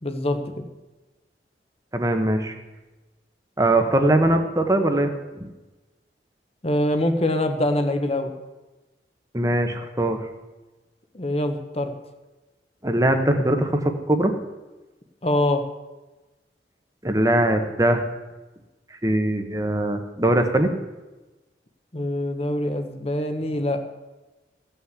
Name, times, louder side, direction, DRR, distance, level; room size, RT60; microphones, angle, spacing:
voice 1, 0.0-0.5 6.6-8.3 11.1-11.9 15.2-15.6 21.9-23.8, left 1 dB, 35° left, 7 dB, 1.1 m, -24 dB
voice 2, 1.9-2.5 3.6-5.1 5.4-5.5 9.3-10.2 12.8-14.3 17.0-18.0 19.0-20.7, right 1 dB, 20° right, 6 dB, 1.1 m, -21 dB
15.5 x 5.9 x 8.2 m, 1.1 s
head